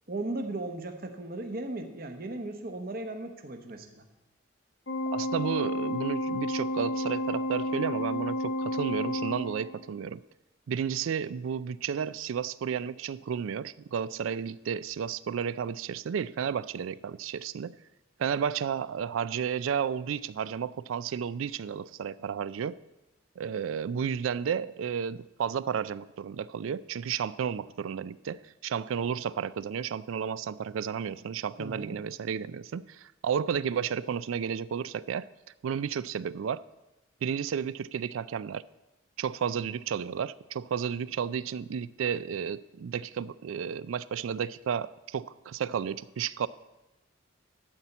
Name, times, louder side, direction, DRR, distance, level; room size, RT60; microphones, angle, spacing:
voice 1, 0.1-4.0 31.6-32.0, right 2 dB, 45° right, 6 dB, 1.0 m, -36 dB
Organ, 4.9-9.9, left 1 dB, 85° left, 1.3 m, -31 dB
voice 2, 5.1-10.2 10.7-17.7 18.2-22.8 23.4-35.3 35.6-36.6 37.2-38.6 39.2-46.5, right 7 dB, 85° right, 18 dB, 0.4 m, -32 dB
12.5 x 4.3 x 8.0 m, 1.0 s
head